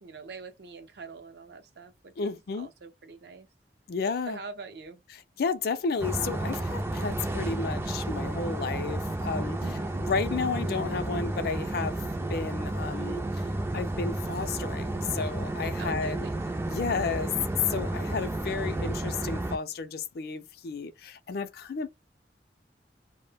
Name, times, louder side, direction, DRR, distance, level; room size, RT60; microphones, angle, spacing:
voice 1, 0.0-3.5 4.3-5.0 9.6-10.0 15.8-16.5, right 4 dB, 65° right, 0.5 m, -44 dB
voice 2, 2.2-2.7 3.9-4.4 5.4-13.2 13.7-16.3 16.6-17.3 17.7-21.9, left 5 dB, 60° left, 0.4 m, -32 dB
sound 1, 6.0-19.6, right 1 dB, 15° right, 0.3 m, -32 dB
2.1 x 2.1 x 3.3 m
head